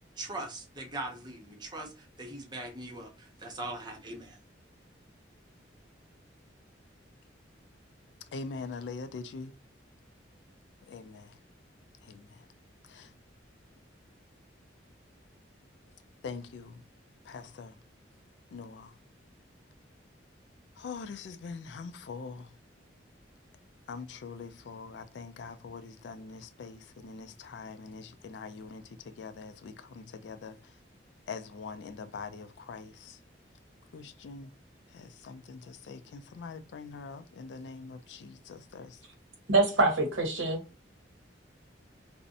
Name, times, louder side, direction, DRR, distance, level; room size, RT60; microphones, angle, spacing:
voice 1, 0.2-4.4, right 2 dB, 25° right, 0.6 m, -41 dB
voice 2, 8.3-9.5 10.9-11.3 12.1-12.2 12.9-13.1 16.2-16.7 17.3-17.7 18.5-18.9 20.8-22.5 23.9-28.8 29.2-30.6 31.3-33.2 33.9-34.5 34.9-39.0, left 4 dB, 65° left, 0.3 m, -43 dB
voice 3, 39.5-40.6, right 2 dB, 90° right, 0.9 m, -25 dB
2.5 x 2.0 x 2.5 m
head